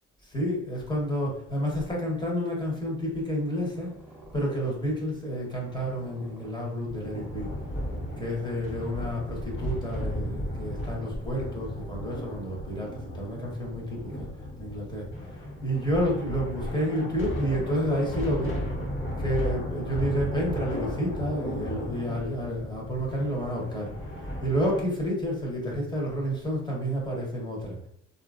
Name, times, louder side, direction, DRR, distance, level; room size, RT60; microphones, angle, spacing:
voice 1, 0.2-4.0 4.3-7.5 8.2-18.6 19.2-27.9, equal, 15° left, -3 dB, 1.1 m, -30 dB
Purr, 3.5-9.0, right 1 dB, 5° right, 0.7 m, -52 dB
sound 1, 6.9-24.8, equal, 40° left, 1.3 m, -35 dB
2.8 x 2.5 x 2.4 m, 0.71 s
cardioid pair, 90°, 30 cm